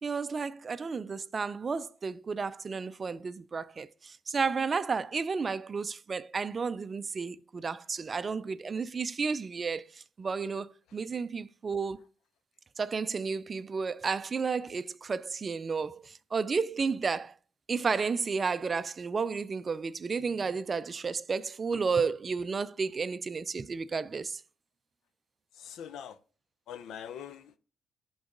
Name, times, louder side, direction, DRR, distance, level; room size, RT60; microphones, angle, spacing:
voice 1, 0.0-12.0 12.8-17.3 17.7-24.4, right 5 dB, 35° right, 0.4 m, -32 dB
voice 2, 25.6-26.2 26.7-27.6, left 9 dB, 80° left, 0.6 m, -43 dB
10.0 x 4.0 x 3.8 m
cardioid pair, 90°, 0 cm